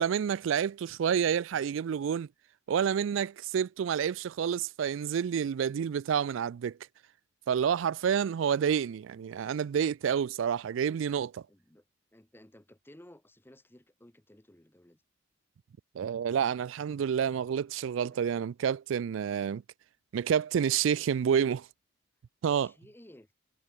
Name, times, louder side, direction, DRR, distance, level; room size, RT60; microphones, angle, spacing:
voice 1, 0.0-2.3 2.7-6.8 7.5-11.4 16.0-19.6 20.1-21.6 22.4-22.7, right 8 dB, 70° right, 0.3 m, -29 dB
voice 2, 10.5-11.1 11.5-11.9 12.1-15.0 18.0-18.5 19.0-19.6 21.3-21.6 22.4-23.3, left 1 dB, 10° left, 1.0 m, -56 dB
head